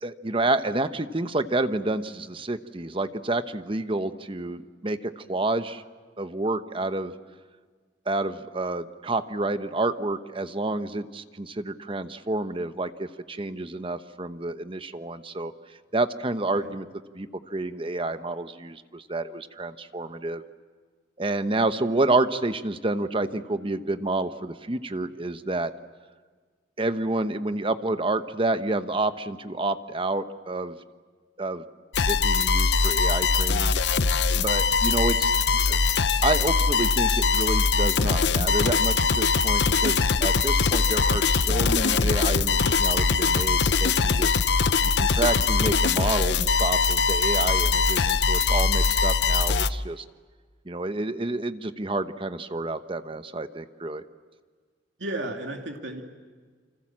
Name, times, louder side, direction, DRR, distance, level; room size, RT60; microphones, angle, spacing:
voice 1, 0.0-5.8 6.2-7.1 8.1-15.5 15.9-16.9 17.1-20.4 21.2-25.7 26.8-30.8 31.4-31.6 32.1-33.8 34.4-35.3 35.7-35.8 36.2-44.4 45.0-50.0 50.7-54.0, right 2 dB, 30° right, 10 dB, 1.0 m, -29 dB
sound 1, 31.9-49.7, left 5 dB, 65° left, 0.8 m, -22 dB
voice 2, 55.0-56.0, right 1 dB, 85° right, 2 dB, 2.6 m, -34 dB
29.0 x 26.0 x 7.5 m, 1.5 s
head